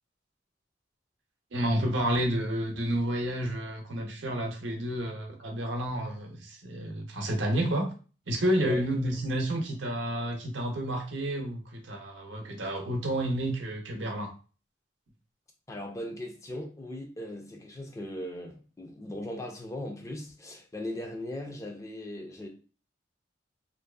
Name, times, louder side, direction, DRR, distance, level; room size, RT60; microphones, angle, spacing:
voice 1, 1.5-7.9 8.3-14.3, right 1 dB, 80° right, 0.7 m, -30 dB
voice 2, 15.7-22.5, left 1 dB, 15° left, 0.3 m, -38 dB
2.6 x 2.3 x 2.2 m
head